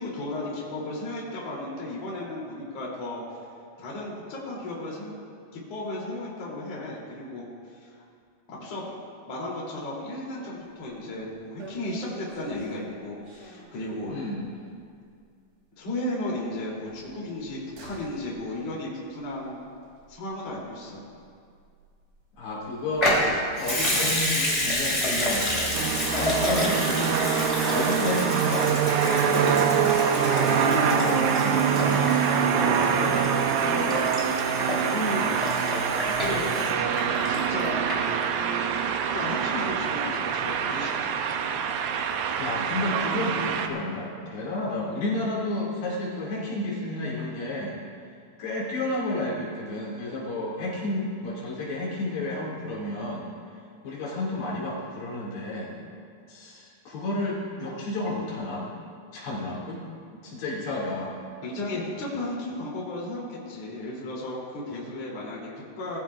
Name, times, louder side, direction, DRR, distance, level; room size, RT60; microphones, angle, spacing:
voice 1, 0.0-3.2 3.8-5.2 5.5-7.9 8.5-8.9 9.3-14.1 15.8-19.7 20.1-21.0 30.4-31.1 32.2-33.2 33.6-35.8 36.2-38.2 39.0-41.1 61.4-66.0, left 1 dB, 40° left, -5 dB, 3.5 m, -34 dB
sound 1, 10.7-11.0 11.2-11.3 11.6-14.3 14.7-14.8 15.1-15.2 16.9-20.8 21.1-23.5 23.8-23.9, right 2 dB, 55° right, 3.4 m, -46 dB
voice 2, 14.1-14.5 22.4-29.9 30.8-32.1 42.4-47.8 48.4-53.3 53.8-55.8 56.3-58.7 59.1-59.9 60.1-61.2, left 1 dB, 75° left, -5 dB, 4.3 m, -31 dB
Water tap faucet / Sink (filling or washing) / Liquid, 23.0-37.6 37.9-38.0, left 1 dB, 10° left, 2.0 m, -29 dB
sound 2, 25.7-43.7, right 7 dB, 80° right, 2.0 m, -25 dB
20.5 x 14.5 x 2.4 m, 2.2 s
omnidirectional pair, 4.9 m